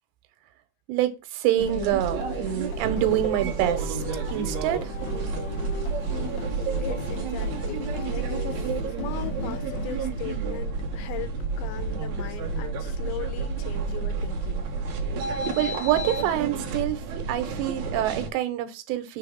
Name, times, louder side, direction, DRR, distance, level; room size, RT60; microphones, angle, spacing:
voice 1, 0.9-5.0 15.6-19.2, right 12 dB, 90° right, 3.0 m, -26 dB
sound 1, 1.6-18.3, right 4 dB, 60° right, 2.1 m, -30 dB
sound 2, 1.7-10.6, left 7 dB, 70° left, 2.4 m, -40 dB
voice 2, 6.8-8.7 9.0-14.7, left 13 dB, 90° left, 3.1 m, -39 dB
6.7 x 3.2 x 5.7 m
omnidirectional pair, 4.9 m